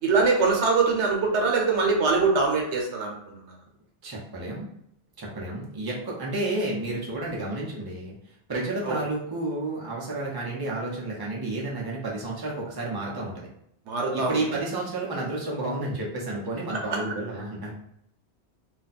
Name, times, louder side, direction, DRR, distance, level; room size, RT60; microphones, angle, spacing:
voice 1, 0.0-3.3 8.8-9.0 13.9-14.4, right 4 dB, 85° right, 0 dB, 1.1 m, -23 dB
voice 2, 4.0-4.7 5.2-13.5 13.9-17.7, right 2 dB, 25° right, -4 dB, 0.7 m, -31 dB
2.5 x 2.3 x 4.0 m, 0.72 s
omnidirectional pair, 1.1 m